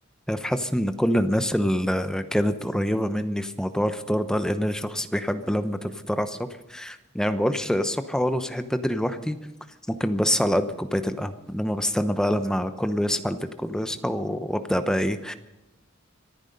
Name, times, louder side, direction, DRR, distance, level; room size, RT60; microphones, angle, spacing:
voice 1, 0.3-9.4 9.9-15.3, equal, 5° left, 9 dB, 0.9 m, -26 dB
25.0 x 9.8 x 5.4 m, 1.0 s
head